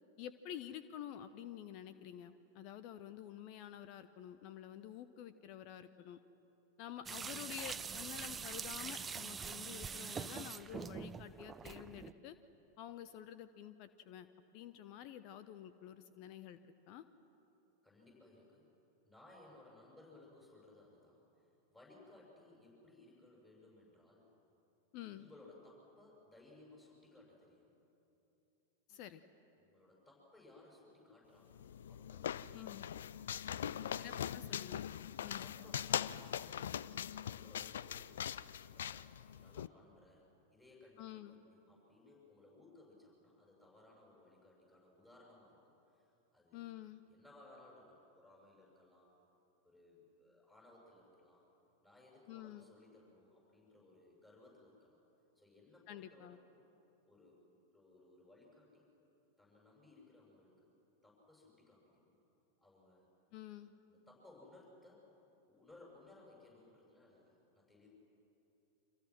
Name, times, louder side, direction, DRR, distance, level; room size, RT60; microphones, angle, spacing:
voice 1, 0.2-6.2 6.8-12.4 12.8-14.3 14.5-16.6 16.9-17.0 24.9-25.3 28.9-29.2 32.5-32.9 34.0-34.8 35.2-35.5 41.0-41.4 46.5-47.0 52.3-52.7 55.9-56.4 63.3-63.7, left 11 dB, 45° left, 13 dB, 0.9 m, -49 dB
sound 1, 7.1-12.1, right 6 dB, 15° right, 0.7 m, -44 dB
voice 2, 17.8-18.7 19.0-24.2 25.1-27.7 29.6-32.9 33.4-34.3 35.0-36.7 37.3-38.2 38.7-49.1 49.6-51.5 51.8-55.0 55.3-56.4 57.0-57.4 57.7-58.9 59.4-60.7 61.0-62.2 62.6-63.1 63.9-65.0 65.5-67.9, left 2 dB, 15° left, -3 dB, 7.0 m, -62 dB
sound 2, 31.5-39.7, left 9 dB, 60° left, 0.5 m, -41 dB
29.5 x 25.5 x 6.2 m, 3.0 s
figure-of-eight pair, 90°, 0 cm